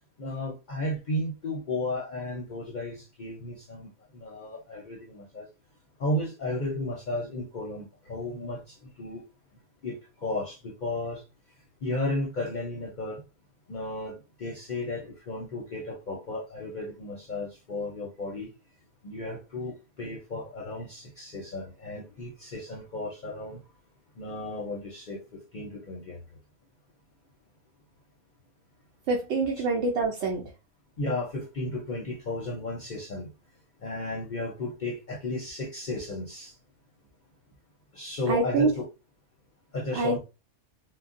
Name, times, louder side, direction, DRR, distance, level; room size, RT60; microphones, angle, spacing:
voice 1, 0.2-5.5 6.0-9.2 9.8-11.3 11.8-13.2 13.7-18.5 19.0-23.6 24.2-26.2 29.6-29.7 31.0-33.3 33.8-36.6 37.9-38.9 39.7-40.2, left 2 dB, 50° left, 0.6 m, -34 dB
voice 2, 29.1-30.4 38.3-38.7 39.9-40.2, right 3 dB, 70° right, 0.9 m, -25 dB
3.7 x 2.0 x 2.4 m
omnidirectional pair, 1.2 m